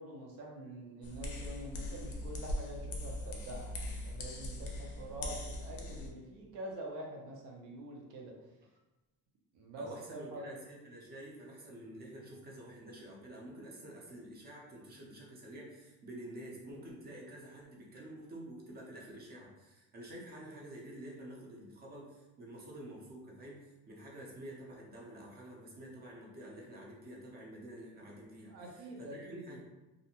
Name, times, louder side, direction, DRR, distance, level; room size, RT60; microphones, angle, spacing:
voice 1, 0.0-8.3 9.5-10.5 28.5-29.4, right 1 dB, 70° right, -1 dB, 0.7 m, -46 dB
sound 1, 1.0-6.1, left 1 dB, 45° left, 0.5 m, -40 dB
voice 2, 9.8-29.6, right 1 dB, 30° right, -2 dB, 0.6 m, -49 dB
2.5 x 2.1 x 2.8 m, 1.1 s
cardioid pair, 150°, 33 cm